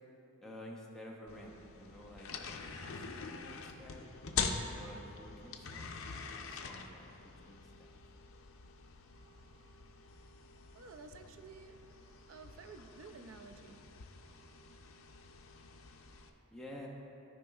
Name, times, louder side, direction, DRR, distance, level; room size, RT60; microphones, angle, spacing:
voice 1, 0.4-4.0 4.8-5.9 6.4-7.1 7.4-7.9 16.5-16.9, left 1 dB, 5° left, -3 dB, 0.8 m, -51 dB
sound 1, 1.3-16.3, left 5 dB, 85° left, 0.5 m, -44 dB
voice 2, 10.7-11.8 12.3-13.8, right 4 dB, 75° right, 8 dB, 0.4 m, -52 dB
14.5 x 5.1 x 2.3 m, 2.8 s
head